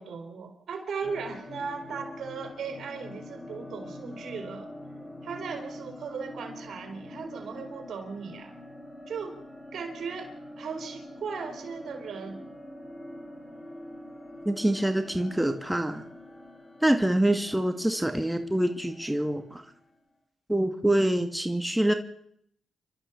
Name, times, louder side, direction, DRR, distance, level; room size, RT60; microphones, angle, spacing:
voice 1, 0.0-4.7 5.2-8.5 9.1-9.4 9.7-12.4, right 5 dB, 75° right, 6 dB, 3.9 m, -37 dB
sound 1, 1.0-20.0, left 1 dB, 40° left, 7.2 m, -45 dB
voice 2, 14.5-16.0 16.8-19.6 20.5-21.9, right 1 dB, 5° right, 6 dB, 2.1 m, -25 dB
29.0 x 12.5 x 7.2 m, 0.70 s
cardioid pair, 55°, 0 cm